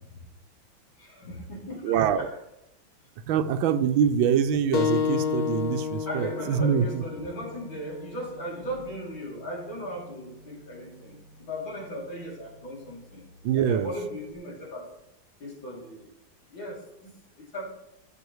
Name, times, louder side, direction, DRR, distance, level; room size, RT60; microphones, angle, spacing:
voice 1, 1.0-2.3 6.1-13.2 13.6-14.9 15.4-16.1 16.5-17.1 17.5-17.7, equal, 80° left, -3 dB, 3.8 m, -37 dB
voice 2, 1.8-2.3 3.3-7.0 13.4-13.9, right 8 dB, 90° right, 10 dB, 1.5 m, -24 dB
sound 1, 4.7-9.9, left 7 dB, 60° left, 1.2 m, -31 dB
15.5 x 6.4 x 3.1 m, 0.85 s
omnidirectional pair, 2.1 m